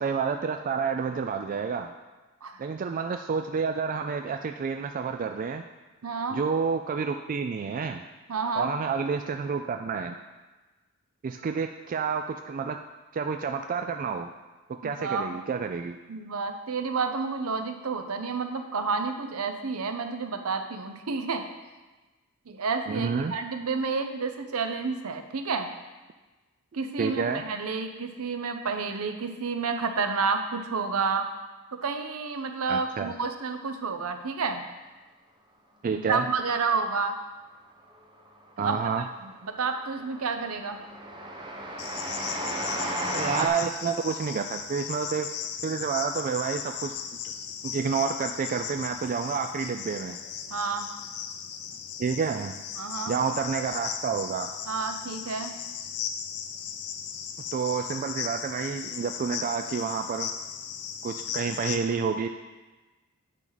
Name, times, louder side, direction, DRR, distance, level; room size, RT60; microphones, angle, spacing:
voice 1, 0.0-1.9 2.6-5.6 6.3-8.0 8.6-10.2 11.2-12.8 13.1-14.3 14.8-16.0 22.9-23.3 27.0-27.4 32.7-33.1 35.8-36.3 38.6-39.0 43.1-45.3 45.6-46.9 47.6-50.2 52.0-52.6 53.1-54.5 57.5-60.3 61.0-62.3, right 5 dB, 40° right, 6 dB, 0.3 m, -29 dB
voice 2, 6.0-6.4 8.3-8.7 14.8-15.3 16.1-21.5 22.5-25.7 26.7-31.3 31.7-34.7 35.9-37.2 38.6-38.8 39.2-40.8 50.5-50.9 52.8-53.2 54.7-55.5, right 4 dB, 70° right, 7 dB, 0.7 m, -30 dB
Train, 37.8-38.3 38.6-43.5, right 1 dB, 20° right, 0.9 m, -34 dB
Cricket, 41.8-61.8, left 7 dB, 85° left, 0.7 m, -37 dB
9.1 x 5.9 x 4.0 m, 1.2 s
head